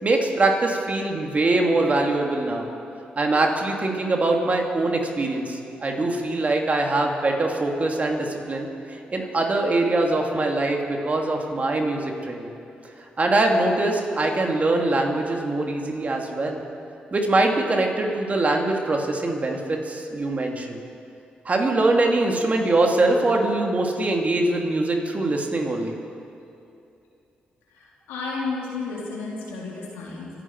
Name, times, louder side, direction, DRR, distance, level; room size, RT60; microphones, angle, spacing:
voice 1, 0.0-2.7 3.2-12.5 13.2-16.6 17.1-20.8 21.4-25.9, right 2 dB, 40° right, 1 dB, 2.7 m, -23 dB
voice 2, 27.7-30.3, left 4 dB, 85° left, -4 dB, 3.1 m, -32 dB
26.5 x 9.9 x 4.7 m, 2.7 s
supercardioid pair, 45°, 4 cm